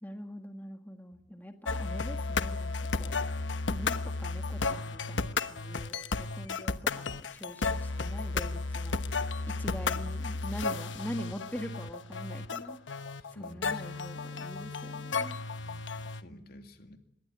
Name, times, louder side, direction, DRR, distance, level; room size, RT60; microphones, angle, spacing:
voice 1, 0.0-3.2 3.7-9.0 9.6-12.8 13.4-15.4, equal, 10° left, 5 dB, 1.6 m, -43 dB
sound 1, 1.7-16.2, left 4 dB, 80° left, 1.1 m, -33 dB
voice 2, 13.2-14.0 14.7-14.8 15.6-17.0, left 1 dB, 55° left, 6 dB, 2.5 m, -52 dB
25.5 x 21.5 x 9.7 m, 0.77 s
head